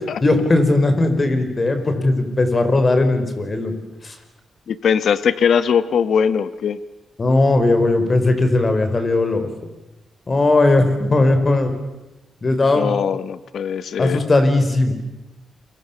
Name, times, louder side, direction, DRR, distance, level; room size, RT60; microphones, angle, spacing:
voice 1, 0.2-3.7 4.0-4.2 7.2-9.5 10.3-11.7 12.4-13.0 14.0-14.9, left 2 dB, 30° left, 8 dB, 4.5 m, -17 dB
voice 2, 4.7-6.8 12.8-14.2, left 7 dB, 65° left, 14 dB, 1.2 m, -20 dB
29.0 x 23.5 x 7.2 m, 1.0 s
cardioid pair, 90°, 0 cm